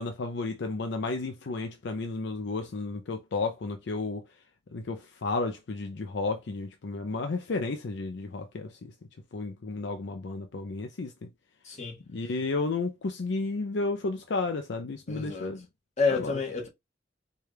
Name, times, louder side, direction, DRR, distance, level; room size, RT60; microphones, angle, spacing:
voice 1, 0.0-4.2 4.7-8.9 9.3-11.1 12.1-15.6 16.1-16.4, left 3 dB, 65° left, 0.5 m, -32 dB
voice 2, 11.6-12.0 15.1-15.5 16.0-16.7, left 4 dB, 40° left, 1.4 m, -29 dB
4.7 x 2.3 x 3.3 m
head